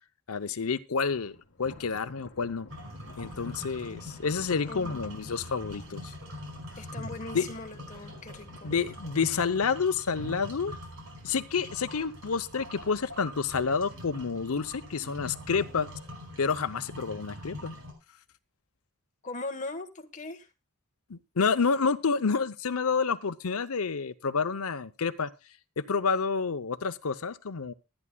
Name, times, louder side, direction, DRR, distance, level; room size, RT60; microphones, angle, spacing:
voice 1, 0.3-1.3 1.6-2.7 3.2-6.1 7.3-7.5 8.6-10.7 11.2-15.9 16.4-17.8 21.1-25.3 25.8-27.7, left 5 dB, 75° left, 12 dB, 0.7 m, -29 dB
Thunder, 1.0-14.3 14.7-15.0 15.4-15.5 16.4-17.0, left 2 dB, 55° left, 1.5 m, -55 dB
sound 1, 2.7-17.9, left 1 dB, 65° right, 5.1 m, -43 dB
voice 2, 4.7-5.3 6.8-8.7 19.2-20.5, left 2 dB, 35° left, 5 dB, 1.4 m, -40 dB
25.0 x 9.8 x 2.3 m, 0.26 s
head